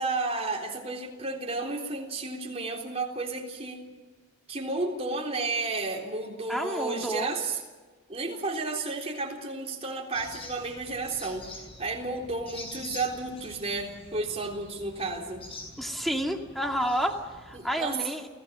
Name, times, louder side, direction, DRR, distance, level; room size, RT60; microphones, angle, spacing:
voice 1, 0.0-3.8 4.5-7.6 8.1-11.5 11.8-15.4 17.5-18.0, right 3 dB, 30° right, 0 dB, 3.7 m, -32 dB
voice 2, 6.5-7.3 15.8-18.3, equal, ahead, 3 dB, 2.2 m, -30 dB
sound 1, 10.1-17.8, left 2 dB, 30° left, 7.1 m, -46 dB
29.0 x 17.5 x 7.5 m, 1.3 s
head